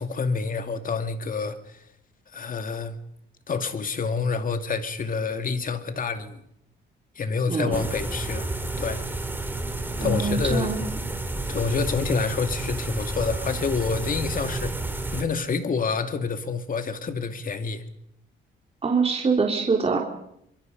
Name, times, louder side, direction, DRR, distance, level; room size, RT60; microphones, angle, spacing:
voice 1, 0.0-1.8 2.3-3.0 3.5-6.4 7.2-8.5 8.8-9.0 10.0-10.7 11.5-14.8 15.1-17.8, left 4 dB, 45° left, 2.4 m, -28 dB
voice 2, 7.5-7.8 10.0-10.8 18.8-20.0, right 4 dB, 30° right, 3.3 m, -24 dB
sound 1, 7.7-15.2, right 2 dB, 10° right, 3.0 m, -31 dB
25.0 x 22.5 x 5.3 m
cardioid pair, 90°, 20 cm